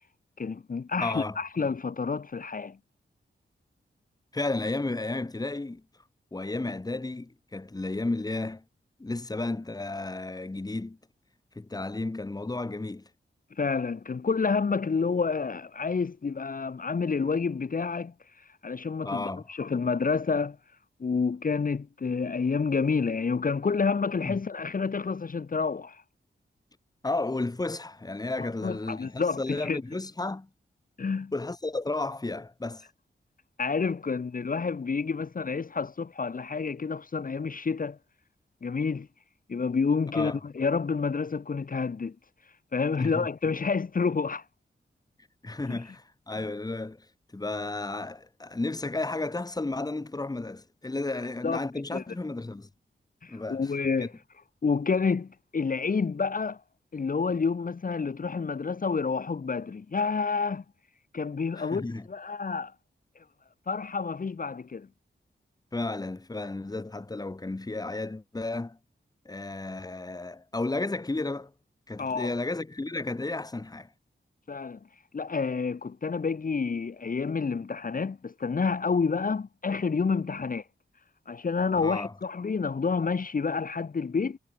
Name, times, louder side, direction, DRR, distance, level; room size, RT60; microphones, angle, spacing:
voice 1, 0.4-2.8 13.5-20.6 21.0-26.0 28.4-29.8 31.0-31.3 33.6-38.0 38.6-39.1 39.5-42.2 42.7-44.4 45.7-45.8 51.4-51.6 51.9-52.0 53.2-54.1 54.6-56.6 56.9-60.6 61.1-62.7 63.1-63.2 63.7-64.9 72.0-72.4 74.5-74.8 75.1-80.7 81.3-84.4, left 5 dB, 45° left, 1.3 m, -29 dB
voice 2, 1.0-1.4 4.3-5.8 6.3-8.6 9.0-11.0 11.5-13.1 19.0-19.4 24.2-24.4 27.0-30.5 31.3-32.8 40.1-40.4 43.0-43.3 45.4-47.0 47.3-52.7 53.3-53.6 54.0-54.1 61.6-62.1 65.7-68.8 69.2-71.5 71.9-73.9 81.8-82.1, left 2 dB, 20° left, 1.6 m, -33 dB
wide cardioid pair, 125°, 20 cm